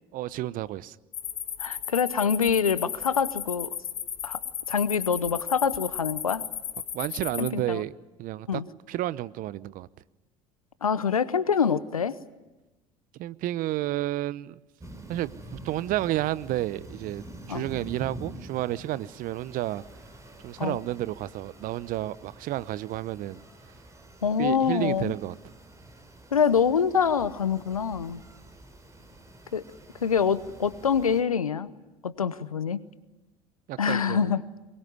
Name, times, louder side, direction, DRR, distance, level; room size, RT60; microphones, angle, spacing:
voice 1, 0.1-1.0 6.9-7.9 8.2-8.6 8.9-9.9 13.2-14.6 15.1-19.8 20.4-23.4 24.4-25.4 33.7-34.3, right 15 dB, 50° right, 19 dB, 0.9 m, -31 dB
sound 1, 1.1-7.5, left 9 dB, 40° left, 2.0 m, -35 dB
voice 2, 1.6-3.7 4.2-4.4 4.7-6.4 7.4-7.8 8.5-8.6 10.8-12.2 17.5-17.6 20.6-20.8 24.2-25.1 26.3-28.2 29.5-29.6 30.0-31.7 32.0-32.8 33.8-34.4, left 6 dB, 90° left, 17 dB, 0.9 m, -25 dB
sound 2, 14.8-31.2, right 1 dB, 15° right, 5.5 m, -47 dB
23.0 x 21.5 x 9.7 m, 1.1 s
hypercardioid pair, 70°, 18 cm